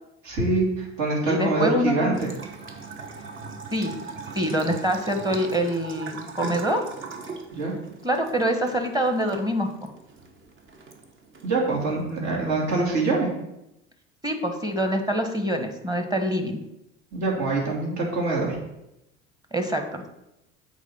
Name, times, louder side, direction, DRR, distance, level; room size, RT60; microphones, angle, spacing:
voice 1, 0.2-2.3 7.5-7.7 11.4-13.3 17.1-18.6, right 3 dB, 55° right, -3 dB, 2.8 m, -24 dB
voice 2, 1.2-2.2 3.7-3.9 4.3-6.8 8.0-9.9 14.2-16.6 19.5-20.1, equal, 10° right, 5 dB, 1.4 m, -25 dB
Bathtub (filling or washing) / Trickle dribble, 2.1-13.1, right 4 dB, 35° right, 1.2 m, -40 dB
8.1 x 4.0 x 5.7 m, 0.87 s
hypercardioid pair, 80°, 33 cm